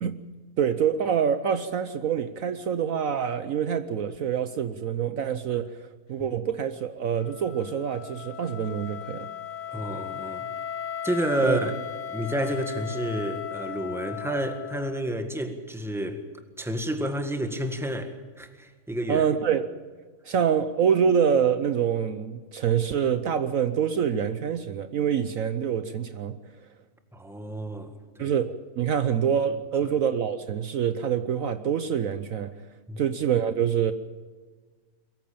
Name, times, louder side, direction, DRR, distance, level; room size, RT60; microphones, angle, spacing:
voice 1, 0.6-9.3 11.4-11.6 19.1-19.7 20.2-26.4 28.2-32.6 33.0-33.9, right 8 dB, 65° right, 1.1 m, -26 dB
Wind instrument woodwind instrument, 7.2-15.2, left 9 dB, 55° left, 1.2 m, -37 dB
voice 2, 9.7-10.5 11.0-11.7 12.1-16.2 16.6-19.2 27.1-27.9 28.2-28.3 29.8-29.9 32.9-33.0, right 1 dB, ahead, 1.6 m, -30 dB
22.5 x 15.0 x 8.7 m
omnidirectional pair, 1.6 m